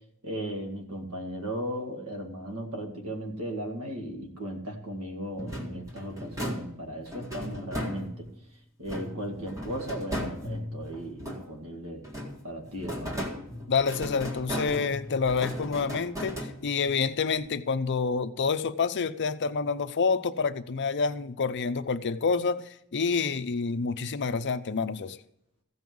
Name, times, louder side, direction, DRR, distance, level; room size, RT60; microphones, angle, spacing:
voice 1, 0.2-8.3 8.8-12.1 12.4-13.2, equal, 80° right, 2.4 m, -36 dB
sound 1, 5.4-8.4 8.9-11.7 12.0-17.0, equal, 15° right, 1.9 m, -37 dB
voice 2, 13.7-25.2, left 5 dB, 55° left, 0.6 m, -28 dB
15.0 x 5.6 x 7.7 m
head